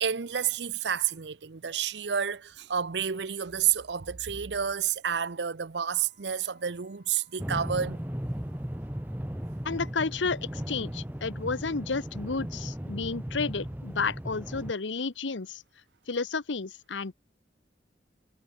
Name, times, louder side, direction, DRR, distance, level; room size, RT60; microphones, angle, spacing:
voice 1, 0.0-8.0, right 8 dB, 70° right, 0.7 m, -30 dB
Wind instrument woodwind instrument, 5.9-10.7, left 4 dB, 70° left, 6.1 m, -66 dB
sound 1, 7.4-14.7, equal, 10° right, 1.1 m, -36 dB
voice 2, 9.6-15.6 16.1-17.1, left 4 dB, 90° left, 1.0 m, -31 dB
head